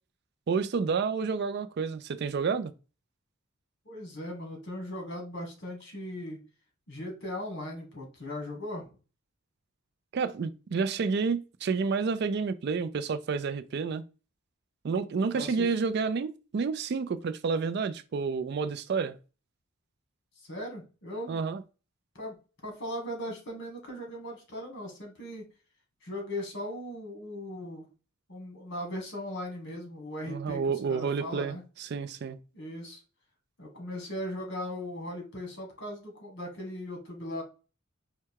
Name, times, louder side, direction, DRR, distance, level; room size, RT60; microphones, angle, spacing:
voice 1, 0.5-2.7 10.1-14.0 14.8-19.2 21.3-21.6 30.3-32.4, right 5 dB, 50° right, 0.3 m, -30 dB
voice 2, 3.9-6.4 6.9-9.0 15.3-15.8 20.4-21.4 22.2-22.4 22.6-25.4 26.0-27.9 28.3-30.6 30.9-31.6 32.5-33.0 33.6-37.4, left 1 dB, 55° left, 1.8 m, -38 dB
4.7 x 2.2 x 4.5 m
head